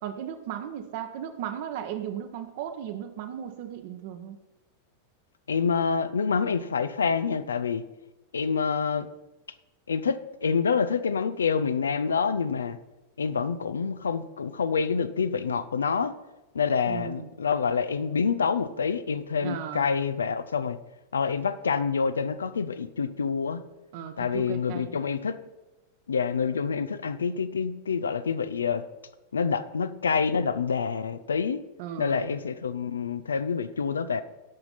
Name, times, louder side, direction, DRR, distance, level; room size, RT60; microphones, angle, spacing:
voice 1, 0.0-4.4 16.9-17.3 19.4-19.9 23.9-25.0 31.8-32.3, right 9 dB, 50° right, 8 dB, 1.0 m, -36 dB
voice 2, 5.5-7.8 8.3-9.1 9.9-12.8 13.2-16.1 16.5-20.8 21.1-23.6 24.2-25.4 26.1-28.8 29.3-31.6 32.0-34.2, left 5 dB, 70° left, 12 dB, 0.5 m, -27 dB
17.0 x 5.8 x 4.1 m, 1.1 s
figure-of-eight pair, 90°, 0 cm